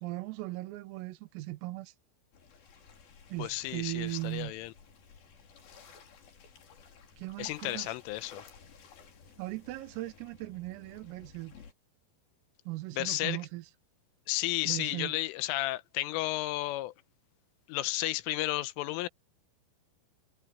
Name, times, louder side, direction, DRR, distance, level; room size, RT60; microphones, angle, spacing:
voice 1, 0.0-1.9 3.3-4.5 7.2-8.0 9.4-11.5 12.7-13.7 14.7-15.2, right 19 dB, 85° right, 3.8 m, -38 dB
sound 1, 2.3-11.7, left 6 dB, 50° left, 4.9 m, -55 dB
voice 2, 3.4-4.7 7.4-8.4 12.9-13.4 14.3-16.9 17.7-19.1, left 17 dB, 85° left, 3.3 m, -33 dB
omnidirectional pair, 5.9 m